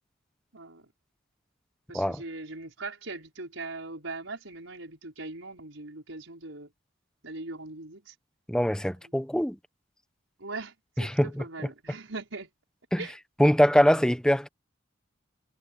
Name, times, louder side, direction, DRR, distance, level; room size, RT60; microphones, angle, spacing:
voice 1, 0.5-0.9 1.9-6.7 7.2-8.2 9.0-9.2 10.4-12.5 13.0-13.2, right 3 dB, 85° right, 5.5 m, -40 dB
voice 2, 8.5-9.6 11.0-11.3 12.9-13.0 13.4-14.5, equal, 5° left, 1.0 m, -23 dB
head